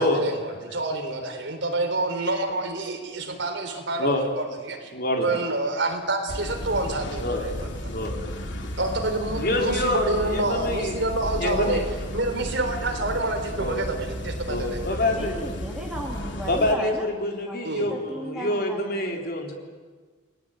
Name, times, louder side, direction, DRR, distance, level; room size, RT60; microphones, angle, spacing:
voice 1, 0.0-4.9 5.2-7.9 8.8-11.8 12.1-15.0 17.6-17.9, right 2 dB, 65° right, 5 dB, 3.9 m, -28 dB
voice 2, 4.9-5.4 7.2-7.5 7.9-8.2 9.4-10.9 11.4-11.8 13.6-13.8 14.5-15.4 16.5-19.5, left 1 dB, 50° left, 2 dB, 4.0 m, -26 dB
sound 1, 6.3-16.7, equal, 65° left, 2.8 m, -33 dB
voice 3, 15.2-17.1 17.4-19.3, right 1 dB, 5° right, -1 dB, 2.9 m, -36 dB
29.5 x 19.5 x 9.2 m, 1.4 s
head